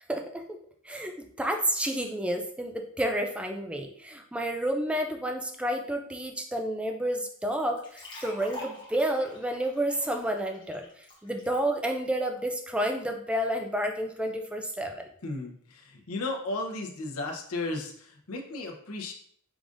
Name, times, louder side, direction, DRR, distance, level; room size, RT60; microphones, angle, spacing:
voice 1, 0.1-0.4 0.8-15.0, right 1 dB, 5° right, 3 dB, 0.4 m, -30 dB
sound 1, 7.8-11.6, left 1 dB, 20° left, 1.2 m, -46 dB
voice 2, 15.2-19.1, left 2 dB, 75° left, 2 dB, 0.8 m, -35 dB
4.9 x 3.7 x 2.5 m, 0.62 s
head